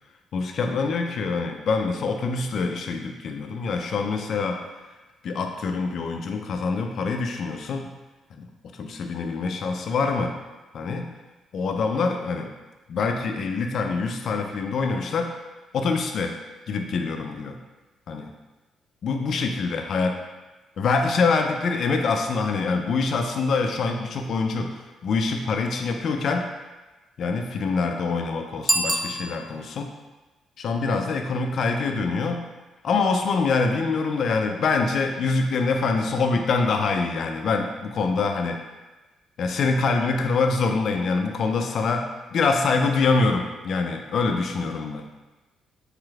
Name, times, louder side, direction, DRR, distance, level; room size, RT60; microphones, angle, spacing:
voice 1, 0.3-4.6 5.2-7.9 8.3-8.5 8.7-10.3 10.7-11.1 11.5-12.5 12.9-15.3 15.7-16.3 16.7-17.6 18.1-18.3 19.0-20.1 20.8-24.7 25.0-26.4 27.2-29.9 30.6-32.4 32.8-38.6 39.4-42.0 42.3-45.2, left 4 dB, 60° left, 4 dB, 0.3 m, -25 dB
Bicycle bell, 28.6-29.8, right 1 dB, 15° right, 0.4 m, -26 dB
3.2 x 3.2 x 2.3 m, 1.2 s
cardioid pair, 90°, 0 cm